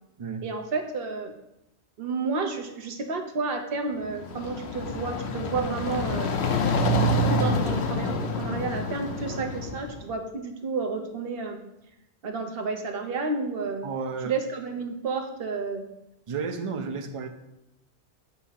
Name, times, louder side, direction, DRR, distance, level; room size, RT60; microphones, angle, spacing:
voice 1, 0.4-1.3 2.0-6.4 7.3-11.6 12.2-13.9 14.2-15.9, right 4 dB, 60° right, 4 dB, 1.0 m, -31 dB
sound 1, 4.0-10.0, left 1 dB, 75° left, 1.0 m, -27 dB
voice 2, 13.8-14.3 16.3-17.3, right 5 dB, 40° right, 7 dB, 0.5 m, -32 dB
8.2 x 2.8 x 5.6 m, 0.87 s
omnidirectional pair, 1.1 m